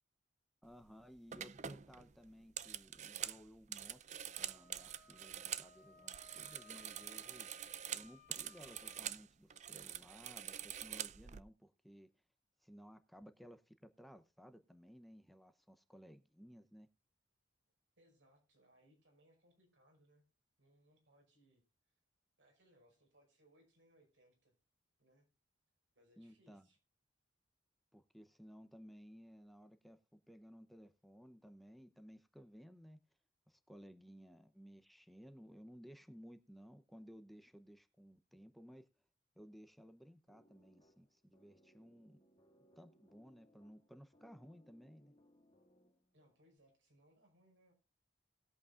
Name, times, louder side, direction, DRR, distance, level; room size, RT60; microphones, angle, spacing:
voice 1, 0.6-4.1 4.4-7.6 7.9-12.1 12.6-16.9 26.2-26.7 27.9-33.0 33.5-38.9 39.4-42.3 42.8-45.1, equal, ahead, 0.7 m, -58 dB
sound 1, 0.7-0.9 1.3-5.7 6.0-9.2 9.5-11.4, right 10 dB, 40° right, 0.5 m, -46 dB
Wind instrument woodwind instrument, 4.3-9.1, left 4 dB, 55° left, 2.4 m, -63 dB
voice 2, 18.0-20.3 20.6-21.6 22.4-24.5 25.0-25.3 26.0-26.8 46.1-47.7, equal, 85° right, 5.5 m, -70 dB
sound 2, 40.3-46.2, equal, 30° left, 1.7 m, -70 dB
19.5 x 8.3 x 2.5 m
head